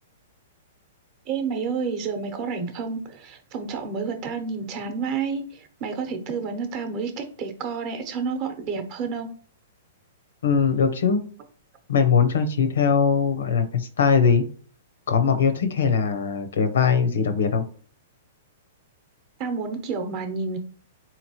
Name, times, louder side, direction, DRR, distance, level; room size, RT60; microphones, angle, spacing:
voice 1, 1.3-9.3 19.4-20.6, right 5 dB, 40° right, 6 dB, 0.8 m, -30 dB
voice 2, 10.4-11.2 11.9-14.4 15.1-17.6, left 6 dB, 85° left, 8 dB, 0.6 m, -21 dB
3.9 x 2.9 x 2.9 m, 0.44 s
hypercardioid pair, 140°, 0 cm